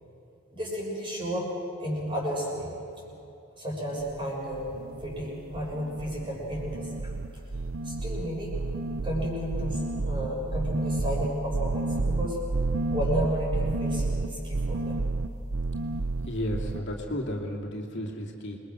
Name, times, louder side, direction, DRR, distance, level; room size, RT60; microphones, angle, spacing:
voice 1, 0.5-1.5 1.8-2.7 3.6-7.2 7.8-8.6 9.0-12.4 12.9-15.1, equal, 25° right, -3 dB, 7.0 m, -32 dB
sound 1, 4.0-4.2 4.5-5.3 5.5-6.3 6.5-16.8, right 3 dB, 70° right, 0.8 m, -30 dB
voice 2, 16.2-18.6, equal, 55° left, -1 dB, 2.6 m, -33 dB
28.0 x 22.0 x 6.4 m, 2.9 s
head